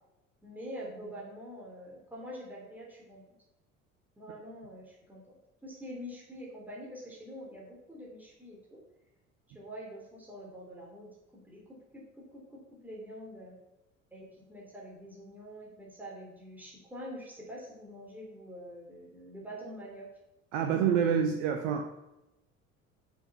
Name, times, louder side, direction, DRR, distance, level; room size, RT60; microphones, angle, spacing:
voice 1, 0.4-3.3 4.2-8.8 9.5-13.6 14.1-20.1 20.6-20.9, equal, 5° right, -4 dB, 3.4 m, -46 dB
voice 2, 20.5-21.8, right 7 dB, 60° right, 5 dB, 0.9 m, -27 dB
7.2 x 7.0 x 5.7 m, 0.96 s
figure-of-eight pair, 60°, 41 cm